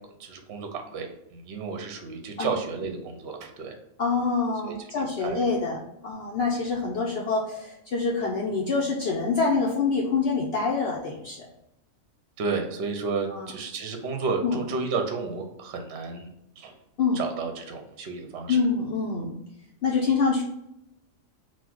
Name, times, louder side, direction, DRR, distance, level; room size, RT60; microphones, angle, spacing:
voice 1, 0.2-3.7 4.7-5.4 12.4-16.3 16.6-16.7 17.1-18.6, right 4 dB, 60° right, 5 dB, 0.8 m, -32 dB
voice 2, 4.0-11.5 13.3-13.5 14.4-14.6 17.0-17.2 18.5-19.3 19.8-20.4, left 4 dB, 60° left, -2 dB, 0.7 m, -26 dB
3.9 x 2.3 x 4.4 m, 0.83 s
omnidirectional pair, 1.4 m